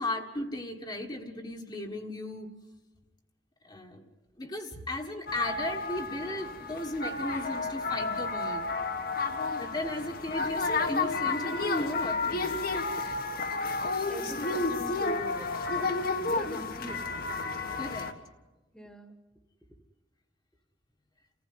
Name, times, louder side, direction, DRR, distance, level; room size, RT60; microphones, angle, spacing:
voice 1, 0.0-2.5 3.6-4.1 4.4-8.6 9.5-12.6 17.8-18.1, left 1 dB, 20° left, 3 dB, 1.6 m, -35 dB
sound 1, 5.3-18.1, left 3 dB, 50° left, 1.6 m, -31 dB
voice 2, 14.1-15.9 16.2-17.1 17.9-18.0 18.7-19.1, equal, 5° left, 7 dB, 1.6 m, -42 dB
29.5 x 15.5 x 9.7 m, 1.1 s
head